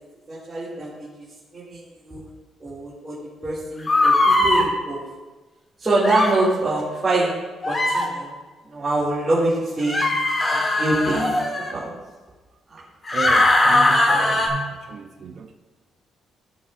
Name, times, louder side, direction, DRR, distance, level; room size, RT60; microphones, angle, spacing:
voice 1, 0.3-1.3 1.5-2.2 2.6-3.2 3.4-5.0 5.8-7.3 7.7-8.3 8.6-10.0 10.5-11.3 11.6-11.9, right 2 dB, 30° right, 2.8 m, -24 dB
sound 1, 3.9-4.6 6.0-6.3 7.6-8.1 9.8-11.7 13.1-14.5, left 2 dB, 30° left, 1.7 m, -19 dB
voice 2, 13.1-15.5, right 5 dB, 55° right, 0.7 m, -33 dB
15.5 x 6.3 x 2.7 m
cardioid pair, 90°, 0 cm